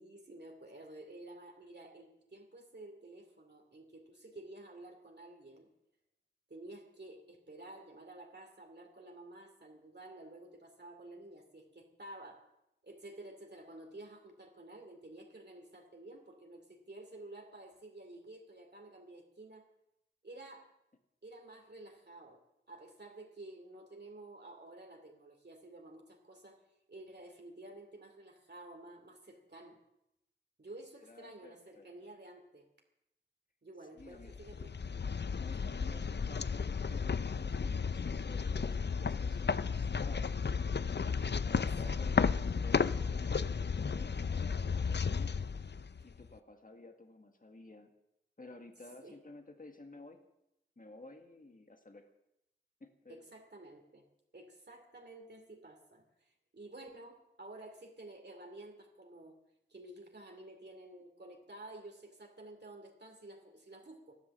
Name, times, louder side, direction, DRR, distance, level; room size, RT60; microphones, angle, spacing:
voice 1, 0.0-5.7 6.5-12.4 12.8-19.6 20.2-20.7 21.2-22.4 22.7-26.6 26.9-29.8 30.6-32.7 33.6-34.7 41.5-42.3 49.0-49.2 53.1-54.0 54.3-59.4 59.7-64.2, right 2 dB, 60° right, 2 dB, 2.7 m, -52 dB
voice 2, 31.0-31.9 33.9-34.4 35.4-40.3 41.4-45.4 46.0-47.9 48.4-50.2 50.8-52.1 52.8-53.2, left 2 dB, 45° left, 5 dB, 1.8 m, -53 dB
sound 1, 34.2-46.3, left 5 dB, 60° left, 0.6 m, -33 dB
14.0 x 12.5 x 7.2 m, 0.84 s
wide cardioid pair, 50°, 20 cm